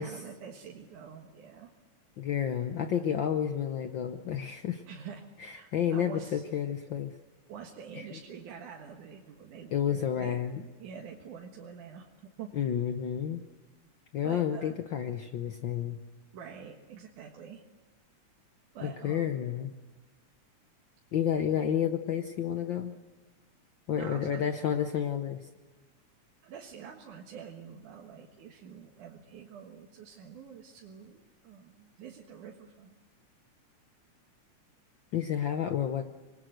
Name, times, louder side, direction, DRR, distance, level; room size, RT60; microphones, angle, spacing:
voice 1, 0.0-1.7 4.9-6.4 7.5-10.4 10.8-12.5 14.2-14.8 16.3-17.6 18.7-19.4 23.9-24.5 26.4-32.9, right 7 dB, 90° right, 0 dB, 3.1 m, -46 dB
voice 2, 2.2-4.8 5.4-7.1 9.7-10.6 12.6-13.4 14.1-16.0 18.8-19.7 21.1-23.0 23.9-25.5 35.1-36.0, left 9 dB, 85° left, 7 dB, 1.0 m, -30 dB
26.0 x 20.5 x 7.9 m, 1.2 s
omnidirectional pair, 3.4 m